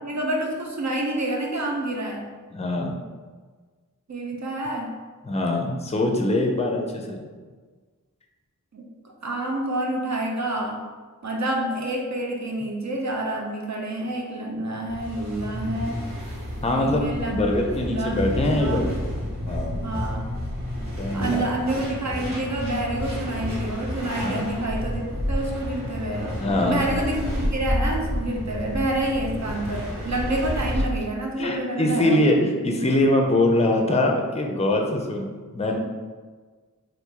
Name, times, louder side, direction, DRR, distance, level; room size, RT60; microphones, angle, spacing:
voice 1, 0.0-2.3 4.1-5.0 8.7-10.9 11.2-16.1 16.8-18.9 19.8-20.3 21.1-32.3, right 1 dB, 55° right, 0 dB, 0.5 m, -28 dB
voice 2, 2.5-3.0 5.3-7.2 16.6-18.9 19.4-19.8 21.0-21.5 24.2-24.5 26.4-26.9 31.4-35.8, left 1 dB, 20° left, 2 dB, 0.5 m, -23 dB
sound 1, 14.9-30.9, equal, 75° right, 1.5 m, -30 dB
2.9 x 2.4 x 3.6 m, 1.5 s
wide cardioid pair, 40°, 33 cm